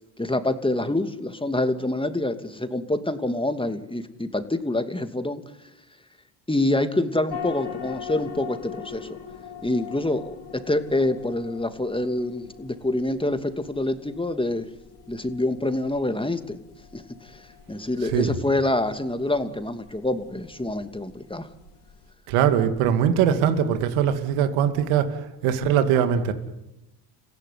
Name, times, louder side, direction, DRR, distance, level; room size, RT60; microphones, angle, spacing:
voice 1, 0.2-5.4 6.5-9.2 9.6-14.7 15.1-16.6 16.9-17.4 17.7-21.5, left 1 dB, 10° left, 9 dB, 2.7 m, -26 dB
sound 1, 7.3-22.1, left 8 dB, 55° left, 4.5 m, -42 dB
voice 2, 22.3-25.1 25.4-26.3, right 8 dB, 85° right, 9 dB, 2.5 m, -21 dB
29.5 x 16.0 x 9.6 m, 0.94 s
supercardioid pair, 60°, 49 cm